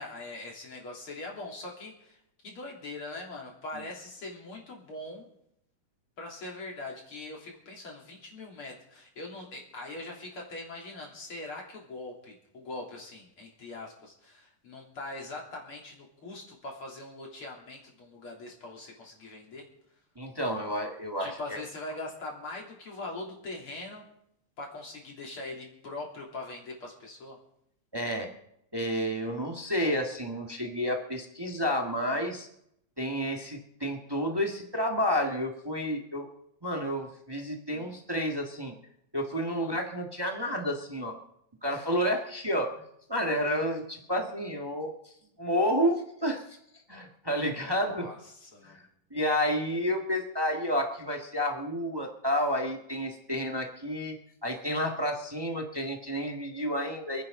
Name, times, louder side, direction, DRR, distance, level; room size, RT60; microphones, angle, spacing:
voice 1, 0.0-5.3 6.2-19.7 21.2-24.0 24.6-27.4 37.7-37.9 39.5-39.8 47.6-48.8, left 2 dB, 45° left, -1 dB, 3.9 m, -42 dB
voice 2, 20.1-21.4 27.9-28.3 28.7-32.5 33.0-36.3 36.6-38.7 39.1-41.2 41.6-42.7 43.1-45.1 45.4-46.6 46.9-48.1 48.6-48.8 49.1-57.2, equal, 20° right, 2 dB, 0.6 m, -30 dB
28.5 x 10.5 x 3.8 m, 0.75 s
omnidirectional pair, 3.6 m